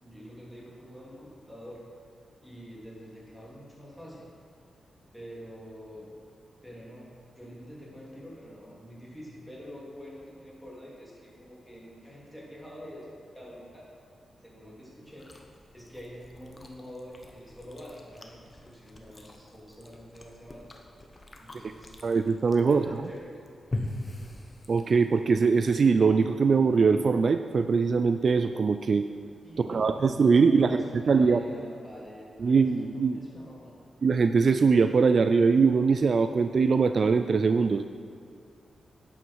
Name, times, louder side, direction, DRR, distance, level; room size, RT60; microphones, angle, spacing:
voice 1, 0.0-1.8 2.4-4.3 5.1-6.2 6.6-13.9 14.4-15.3 15.7-20.7 21.4-22.0 22.7-23.3 29.4-32.6 32.9-33.7, equal, ahead, -5 dB, 3.2 m, -46 dB
Chewing mastication, 15.1-25.2, left 2 dB, 30° left, 1.2 m, -42 dB
voice 2, 22.0-22.9 24.7-29.1 29.6-30.8 31.1-31.4 32.4-33.2 34.0-37.8, right 5 dB, 55° right, 9 dB, 0.4 m, -22 dB
11.0 x 9.8 x 4.7 m, 2.3 s
cardioid pair, 95°, 0 cm